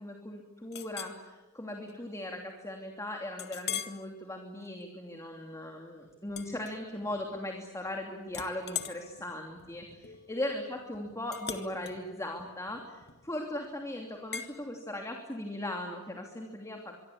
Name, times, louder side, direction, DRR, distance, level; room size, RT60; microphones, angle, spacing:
voice 1, 0.0-17.0, left 1 dB, 15° left, 2 dB, 2.9 m, -38 dB
Chink clink, 0.7-1.2 1.7-1.9 2.4-2.5 3.4-4.0 4.5-4.8 6.3-7.2 7.6-8.0 8.3-13.4 14.3-14.5, left 8 dB, 50° left, 2.0 m, -41 dB
24.5 x 24.0 x 8.6 m, 1.1 s
head